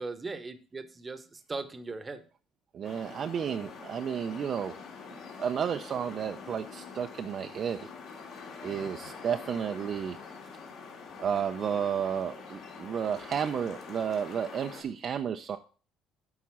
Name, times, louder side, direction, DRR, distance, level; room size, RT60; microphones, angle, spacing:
voice 1, 0.0-2.2, right 3 dB, 20° right, 9 dB, 0.9 m, -39 dB
voice 2, 2.7-4.8 5.4-7.9 8.6-10.2 11.2-15.6, right 8 dB, 45° right, 6 dB, 0.4 m, -32 dB
sound 1, 2.8-14.8, left 5 dB, 60° left, 2.2 m, -45 dB
8.6 x 4.1 x 6.0 m, 0.39 s
cardioid pair, 125°, 0 cm